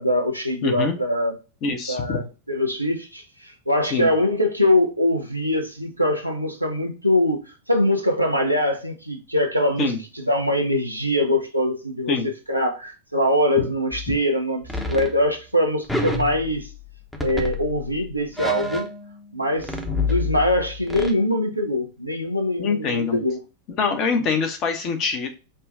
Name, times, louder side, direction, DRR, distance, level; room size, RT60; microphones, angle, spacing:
voice 1, 0.0-1.4 1.9-16.7 17.2-18.9 19.3-19.7 20.0-23.4, left 1 dB, 90° right, 0.7 m, -23 dB
voice 2, 0.6-1.0 1.6-2.2 3.8-4.1 9.8-10.0 12.1-12.3 22.6-23.2 23.8-25.3, left 5 dB, 35° left, 0.9 m, -24 dB
sound 1, 13.9-14.2 14.6-15.2 15.9-16.9 17.1-19.3 19.6-21.1, left 2 dB, 5° left, 0.8 m, -28 dB
5.4 x 2.3 x 2.6 m
figure-of-eight pair, 90°, 0 cm